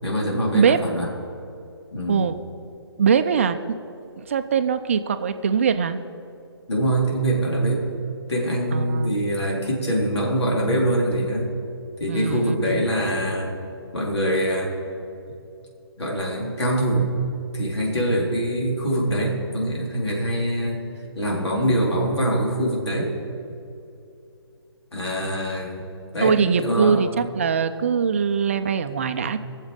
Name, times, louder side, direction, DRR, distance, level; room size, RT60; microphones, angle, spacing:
voice 1, 0.0-1.1 1.9-2.2 6.7-7.8 8.3-11.5 12.0-13.5 13.9-14.7 16.0-17.1 17.5-20.8 21.1-23.1 24.9-25.8 26.1-26.4 26.6-27.0, right 1 dB, 80° left, -2 dB, 3.7 m, -24 dB
voice 2, 2.1-2.4 3.0-3.6 4.0-6.0 8.7-9.3 12.1-12.9 26.2-29.4, right 6 dB, 30° right, 9 dB, 0.4 m, -22 dB
21.5 x 7.3 x 5.1 m, 2.6 s
hypercardioid pair, 165°, 14 cm